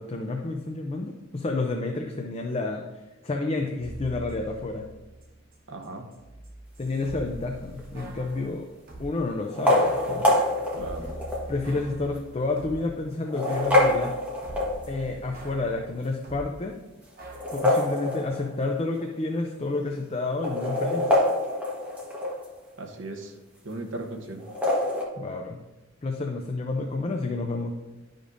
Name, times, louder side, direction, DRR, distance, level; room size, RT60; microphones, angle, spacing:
voice 1, 0.0-2.8 3.2-4.9 6.8-8.7 9.0-10.4 11.5-14.2 14.9-16.8 17.5-21.1 25.2-25.6 26.0-27.8, left 3 dB, 30° left, 2 dB, 0.5 m, -30 dB
sound 1, 3.8-5.6 5.8-9.2 9.8-13.0 13.5-16.5 17.2-17.4, right 1 dB, 45° right, 1.0 m, -43 dB
voice 2, 5.7-6.1 10.7-11.2 22.8-23.3 23.6-24.4, right 2 dB, 70° right, 3 dB, 1.0 m, -37 dB
sound 2, 7.8-8.2 9.4-11.5 12.2-12.3 13.1-15.1 17.2-18.7 19.0-19.1 19.3-19.4 20.3-22.5 24.4-25.0, left 1 dB, 5° right, 1.2 m, -25 dB
11.0 x 5.1 x 2.6 m, 1.1 s
head